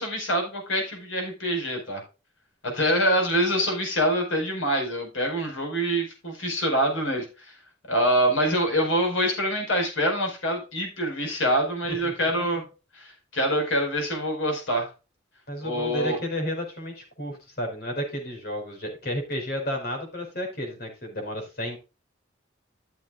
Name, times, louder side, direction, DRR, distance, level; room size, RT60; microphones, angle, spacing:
voice 1, 0.0-2.0 2.6-7.3 7.9-12.6 12.9-14.9 15.6-16.2, equal, 80° left, 2 dB, 5.1 m, -25 dB
voice 2, 15.5-21.8, equal, 50° left, 3 dB, 4.9 m, -32 dB
14.5 x 7.3 x 2.4 m, 0.30 s
head